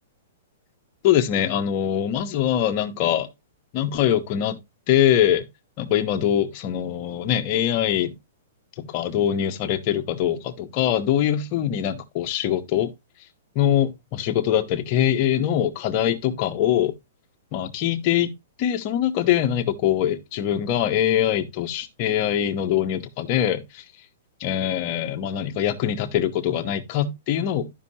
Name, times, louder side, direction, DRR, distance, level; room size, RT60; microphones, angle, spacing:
voice 1, 1.0-3.3 3.7-4.6 4.9-5.5 5.8-8.2 8.8-12.9 13.5-16.9 17.5-18.3 18.6-23.8 24.4-27.7, left 10 dB, 30° left, 0.9 m, -23 dB
12.5 x 5.4 x 2.8 m
hypercardioid pair, 170°, 0 cm